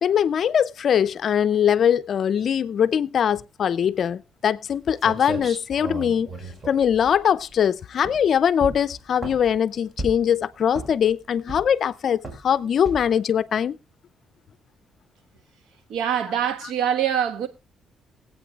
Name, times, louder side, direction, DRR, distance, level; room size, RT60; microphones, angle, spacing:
voice 1, 0.0-6.3 6.7-13.8, left 8 dB, 60° left, 0.5 m, -22 dB
sound 1, 4.7-4.8 5.0-7.6 8.0-8.3 8.6-9.6 10.0-10.3 10.7-11.1 11.5-11.9 12.2-12.5 12.9-13.2, right 2 dB, 30° right, 4.6 m, -35 dB
voice 2, 15.9-17.5, right 9 dB, 85° right, 1.4 m, -24 dB
22.5 x 8.5 x 2.4 m
cardioid pair, 90°, 0 cm